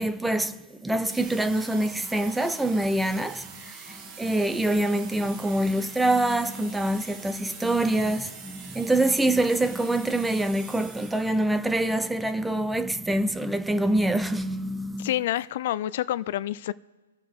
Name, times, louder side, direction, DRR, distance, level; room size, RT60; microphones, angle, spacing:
voice 1, 0.0-15.1, right 1 dB, 5° right, 0.5 m, -25 dB
sound 1, 1.0-11.6, right 5 dB, 25° right, 1.5 m, -44 dB
voice 2, 15.0-16.7, left 13 dB, 50° left, 0.4 m, -28 dB
26.5 x 9.4 x 3.6 m
hypercardioid pair, 140°, 0 cm